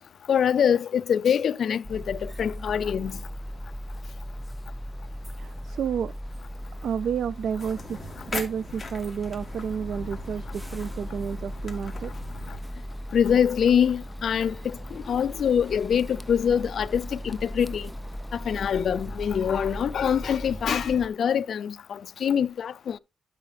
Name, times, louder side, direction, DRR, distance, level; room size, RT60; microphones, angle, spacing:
voice 1, 0.3-3.2 12.5-12.6 13.1-17.9 18.3-23.0, left 8 dB, 65° left, 0.4 m, -24 dB
sound 1, 1.8-21.1, equal, ahead, 0.4 m, -38 dB
voice 2, 5.4-6.1 6.8-8.0 8.3-12.1 14.5-14.6, right 7 dB, 70° right, 0.3 m, -31 dB
sound 2, 7.6-12.6, left 2 dB, 20° left, 3.0 m, -40 dB
11.0 x 5.6 x 3.3 m
wide cardioid pair, 145°, 0 cm